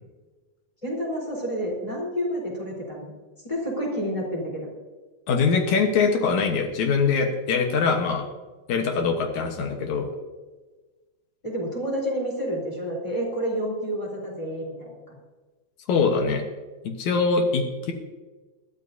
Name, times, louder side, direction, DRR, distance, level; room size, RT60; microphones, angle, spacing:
voice 1, 0.8-3.1 3.4-4.7 11.4-15.2, equal, 10° left, -2 dB, 4.1 m, -29 dB
voice 2, 5.3-8.2 8.7-10.1 15.9-16.4 16.8-17.9, left 5 dB, 70° left, 4 dB, 2.6 m, -23 dB
20.5 x 13.0 x 2.8 m, 1.3 s
omnidirectional pair, 3.6 m